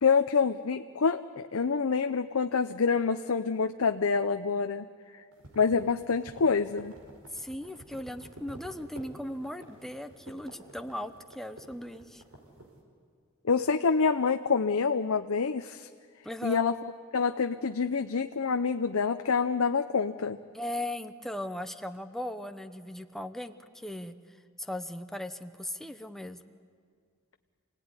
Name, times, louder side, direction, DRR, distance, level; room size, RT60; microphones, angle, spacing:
voice 1, 0.0-4.9 5.1-5.2 5.6-6.9 13.4-15.9 16.4-16.7 17.1-20.4, left 5 dB, 80° left, 7 dB, 0.7 m, -27 dB
sound 1, 5.3-12.7, right 1 dB, 80° right, 4.7 m, -50 dB
voice 2, 7.3-12.2 16.2-16.6 20.5-24.2 24.6-26.4, left 1 dB, ahead, 7 dB, 0.9 m, -38 dB
27.5 x 17.5 x 9.7 m, 2.1 s
head